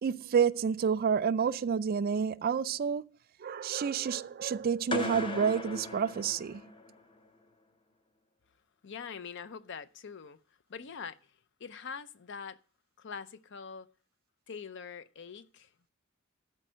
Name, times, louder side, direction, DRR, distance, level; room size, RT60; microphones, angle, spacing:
voice 1, 0.0-3.0 3.4-6.6, right 7 dB, 45° right, 0.3 m, -29 dB
sound 1, 4.9-7.0, left 2 dB, 25° left, 0.7 m, -37 dB
voice 2, 8.8-10.4 10.7-12.6 13.0-13.9 14.5-15.7, left 6 dB, 60° left, 0.6 m, -44 dB
12.0 x 4.5 x 6.2 m
head